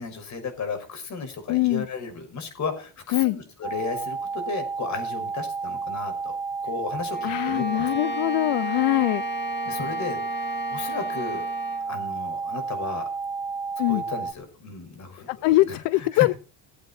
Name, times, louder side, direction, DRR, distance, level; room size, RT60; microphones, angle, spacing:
voice 1, 0.0-6.4 6.6-8.1 9.7-11.5 11.8-13.1 13.9-16.3, left 4 dB, 40° left, 7 dB, 5.7 m, -34 dB
voice 2, 1.5-1.9 3.1-3.4 7.2-9.2 13.8-14.0 15.3-16.3, left 20 dB, 70° left, 19 dB, 0.7 m, -22 dB
sound 1, 3.6-14.3, right 4 dB, 10° right, 1.0 m, -31 dB
Bowed string instrument, 7.1-11.9, left 1 dB, 25° left, 2.0 m, -35 dB
18.0 x 8.3 x 4.4 m, 0.36 s
cardioid pair, 125°, 43 cm